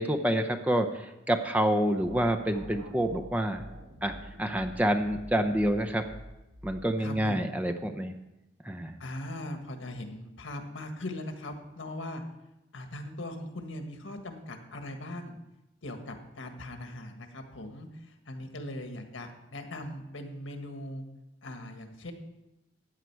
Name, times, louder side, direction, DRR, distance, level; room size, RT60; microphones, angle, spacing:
voice 1, 0.0-3.6 4.0-6.1 6.6-8.1 8.6-9.0, right 1 dB, 10° right, 5 dB, 0.6 m, -28 dB
sound 1, 1.9-7.4, right 1 dB, 75° right, 1.5 m, -48 dB
voice 2, 7.0-7.7 9.0-12.2 12.7-15.4 15.8-21.0 21.4-22.1, left 1 dB, 80° left, 5 dB, 1.5 m, -40 dB
14.5 x 9.1 x 4.6 m, 0.95 s
head